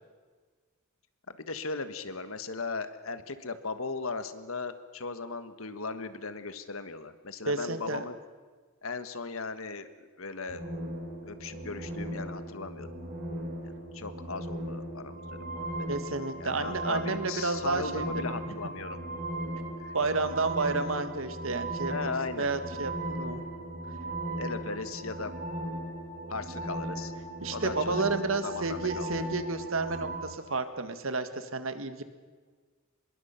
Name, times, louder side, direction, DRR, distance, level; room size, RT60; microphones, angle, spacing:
voice 1, 1.4-8.1 8.8-10.6 11.2-12.9 13.6-15.7 16.4-19.0 19.8-19.9 21.9-22.5 24.4-25.3 26.3-27.1 27.5-28.0 28.4-29.1, left 4 dB, 80° left, 11 dB, 1.5 m, -37 dB
voice 2, 7.5-8.0 15.9-18.1 19.9-21.9 22.4-23.4 27.4-32.0, right 3 dB, 70° right, 9 dB, 1.8 m, -31 dB
sound 1, 10.5-30.2, right 1 dB, 45° right, 4.9 m, -37 dB
25.0 x 22.0 x 5.9 m, 1.5 s
head